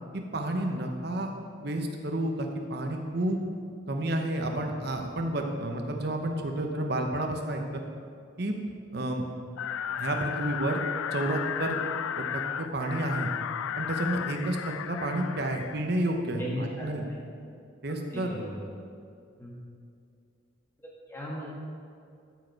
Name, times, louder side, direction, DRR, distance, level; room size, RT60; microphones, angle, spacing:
voice 1, 0.1-1.3 1.6-3.4 3.9-7.8 8.4-8.6 8.9-9.3 10.0-10.8 11.1-11.8 12.2-13.3 13.8-17.0 17.8-18.3, right 1 dB, 50° right, 3 dB, 0.9 m, -30 dB
sound 1, 9.6-15.8, left 9 dB, 80° left, 0.3 m, -34 dB
voice 2, 16.4-16.9 18.1-18.7 19.4-19.5 21.1-21.5, equal, 10° left, -5 dB, 1.7 m, -36 dB
13.0 x 5.1 x 4.7 m, 2.3 s
head